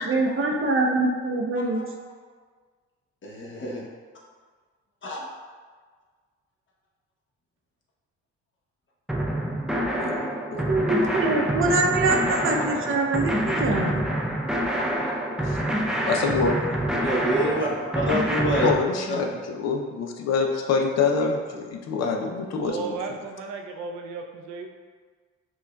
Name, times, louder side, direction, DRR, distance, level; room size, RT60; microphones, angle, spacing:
voice 1, 0.0-1.8 10.5-14.0, right 2 dB, 45° right, 1 dB, 0.6 m, -24 dB
voice 2, 3.2-3.8 5.0-5.3 11.0-11.2 15.0-15.1 17.0-18.7, equal, 40° left, -3 dB, 1.0 m, -27 dB
sound 1, 9.1-18.7, right 1 dB, ahead, 0.4 m, -26 dB
voice 3, 10.0-10.6 15.4-15.6 16.1-16.6 18.6-23.0, left 4 dB, 60° left, 2 dB, 0.5 m, -26 dB
voice 4, 22.6-24.7, right 4 dB, 90° right, 3 dB, 0.5 m, -34 dB
5.9 x 2.3 x 2.2 m, 1.5 s
cardioid pair, 90°, 30 cm